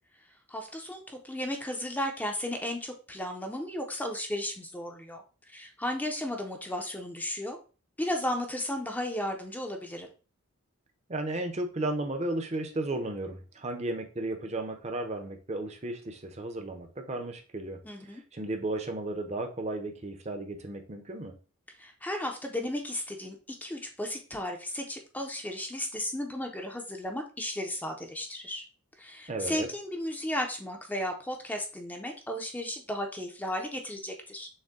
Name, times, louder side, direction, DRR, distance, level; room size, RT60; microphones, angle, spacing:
voice 1, 0.5-7.6 8.0-10.1 17.8-18.2 21.8-28.6 29.0-34.5, left 1 dB, 10° left, 3 dB, 0.5 m, -34 dB
voice 2, 11.1-21.3 29.3-29.7, right 2 dB, 30° right, 5 dB, 0.7 m, -34 dB
6.4 x 2.2 x 3.6 m, 0.35 s
head